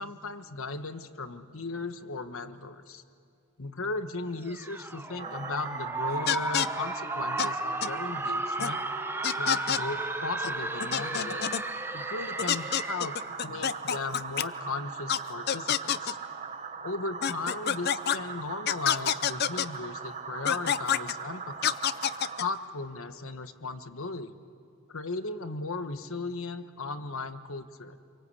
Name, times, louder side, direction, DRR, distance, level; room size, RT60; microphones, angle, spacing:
voice 1, 0.0-3.0 3.6-8.8 9.3-11.5 11.9-13.2 13.4-16.2 16.8-21.8 22.4-24.3 24.9-28.0, left 3 dB, 70° left, 9 dB, 1.3 m, -36 dB
sound 1, 4.4-13.3, right 2 dB, 10° right, 0.7 m, -34 dB
sound 2, 5.2-22.5, right 5 dB, 30° right, 1.1 m, -40 dB
sound 3, 6.3-6.7 7.4-7.5 7.8-7.9 8.6-8.7 9.2-9.8 10.4-10.5 10.8-11.6 12.4-14.4 15.1-15.2 15.5-16.1 17.2-18.2 18.7-19.7 20.4-21.1 21.6-22.4, left 9 dB, 45° left, 0.6 m, -27 dB
28.0 x 24.0 x 8.4 m, 2.3 s
head